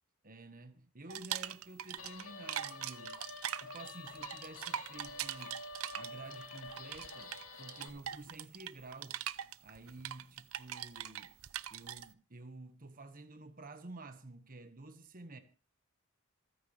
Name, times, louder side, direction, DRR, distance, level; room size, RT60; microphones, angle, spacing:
voice 1, 0.2-3.2 3.6-5.6 5.9-9.2 9.6-11.4 11.7-15.4, right 2 dB, 40° right, 1.5 m, -51 dB
sound 1, 1.1-2.2 2.5-12.1, right 10 dB, 65° right, 0.8 m, -42 dB
Guitar, 2.0-7.9, left 3 dB, 65° left, 2.5 m, -48 dB
27.5 x 9.5 x 3.3 m
head